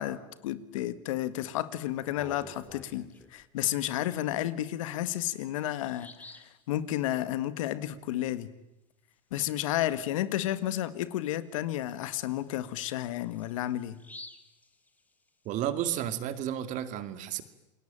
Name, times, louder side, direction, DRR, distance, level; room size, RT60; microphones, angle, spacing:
voice 1, 0.0-8.5 9.3-14.0, left 13 dB, 80° left, 1.9 m, -32 dB
Bird vocalization bird call bird song, 1.9-3.4 4.9-5.0 5.4-5.5 5.9-6.6 10.1-10.2 10.6-10.7 11.2-15.5, left 2 dB, 10° left, 2.7 m, -52 dB
voice 2, 15.4-17.4, right 11 dB, 45° right, 2.3 m, -32 dB
28.5 x 21.5 x 9.0 m
supercardioid pair, 115°, 17 cm